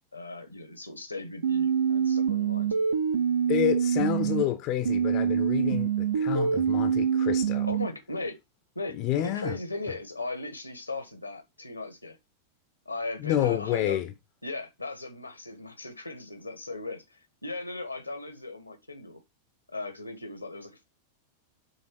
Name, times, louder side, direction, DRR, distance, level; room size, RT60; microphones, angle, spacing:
voice 1, 0.1-2.7 7.7-8.4 8.7-12.2 12.8-14.1 14.4-19.2 19.7-20.8, left 2 dB, 85° left, 1.2 m, -38 dB
sound 1, 1.4-4.4 4.8-7.9, right 7 dB, 70° right, 0.8 m, -25 dB
voice 2, 3.5-7.7 8.9-9.6 13.2-14.1, left 12 dB, 40° left, 0.6 m, -29 dB
6.3 x 3.5 x 4.6 m
figure-of-eight pair, 90°, 0 cm